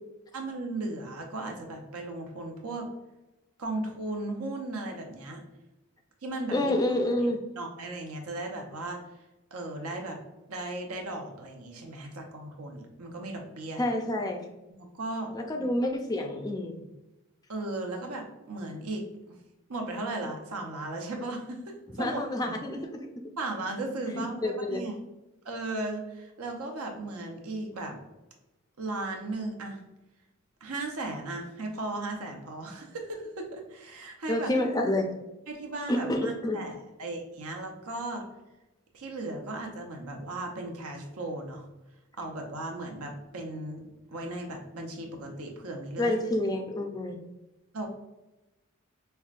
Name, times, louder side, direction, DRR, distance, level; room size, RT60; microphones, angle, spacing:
voice 1, 0.3-2.9 3.6-5.4 6.2-6.7 7.6-9.0 9.5-10.2 10.5-13.8 14.7-15.3 17.5-19.4 19.7-22.5 23.4-24.9 25.4-28.0 28.8-29.8 30.6-34.5 35.5-38.3 38.9-41.7 42.2-43.8 44.1-46.2 47.7-47.9, right 2 dB, 90° right, 2 dB, 0.8 m, -36 dB
voice 2, 6.5-7.4 13.8-14.4 15.3-16.8 22.0-23.3 24.1-24.8 34.3-35.1 35.9-36.6 46.0-47.2, left 1 dB, 15° left, 3 dB, 0.3 m, -28 dB
5.5 x 2.2 x 2.4 m, 0.99 s
head